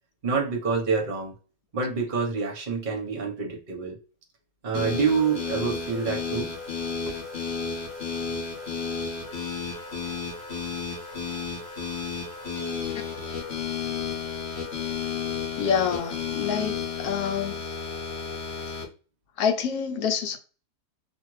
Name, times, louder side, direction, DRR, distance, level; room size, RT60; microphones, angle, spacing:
voice 1, 0.2-1.3 1.7-4.0 4.6-6.5 7.1-7.2, right 5 dB, 40° right, 0.8 m, -27 dB
sound 1, 4.7-18.8, left 5 dB, 50° left, 1.0 m, -32 dB
voice 2, 15.6-16.7 17.0-17.6 19.4-20.4, left 7 dB, 75° left, 1.0 m, -26 dB
2.6 x 2.5 x 3.0 m
omnidirectional pair, 1.8 m